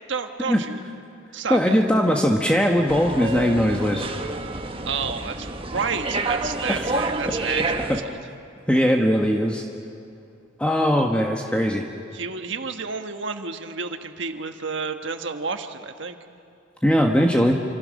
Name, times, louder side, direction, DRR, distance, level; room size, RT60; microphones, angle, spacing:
voice 1, 0.1-0.8 1.3-1.7 4.8-8.2 12.1-16.2, right 5 dB, 70° right, 6 dB, 1.5 m, -30 dB
voice 2, 1.5-4.0 6.7-6.8 7.9-8.0 8.7-9.6 10.6-11.8 16.8-17.5, equal, 5° left, 1 dB, 1.2 m, -20 dB
sound 1, 2.9-8.0, right 2 dB, 30° right, 1.2 m, -28 dB
27.5 x 26.5 x 6.5 m, 2.5 s
head